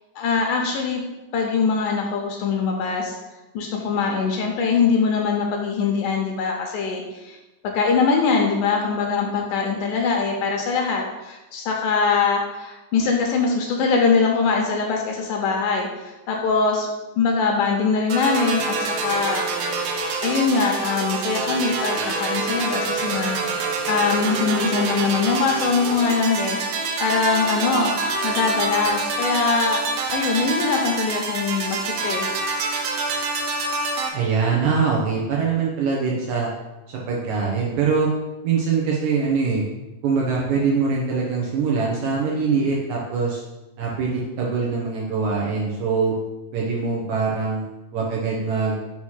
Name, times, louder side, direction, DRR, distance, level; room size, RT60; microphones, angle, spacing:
voice 1, 0.2-1.0 1.3-3.2 3.5-7.4 7.6-16.9 17.2-18.8 19.0-19.9 20.2-26.6 27.0-27.9 28.2-32.3, left 5 dB, 75° left, 1 dB, 2.0 m, -22 dB
sound 1, 18.1-34.1, right 3 dB, 90° right, 2.6 m, -26 dB
voice 2, 34.1-36.5 37.1-38.1 38.4-39.6 40.0-43.4 43.8-46.1 46.5-47.6 47.9-48.8, right 5 dB, 70° right, -3 dB, 1.9 m, -23 dB
6.2 x 3.0 x 5.5 m, 1.0 s
omnidirectional pair, 4.1 m